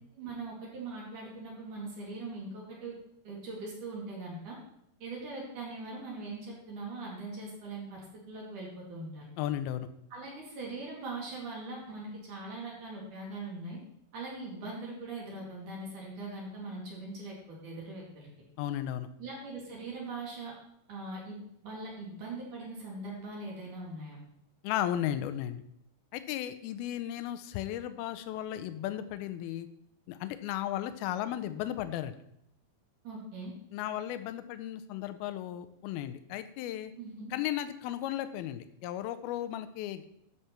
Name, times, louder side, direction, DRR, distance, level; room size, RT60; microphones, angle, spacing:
voice 1, 0.2-2.9 3.2-4.6 5.0-9.2 10.1-13.8 14.1-18.3 19.2-20.5 20.9-24.2 33.0-33.5 37.0-37.3, right 2 dB, 55° right, -4 dB, 3.5 m, -41 dB
voice 2, 9.4-9.9 18.6-19.1 24.6-25.6 26.1-29.7 30.1-32.1 33.7-36.9 37.3-40.0, left 12 dB, 80° left, 11 dB, 2.4 m, -35 dB
11.0 x 6.9 x 4.4 m, 0.77 s
omnidirectional pair, 4.6 m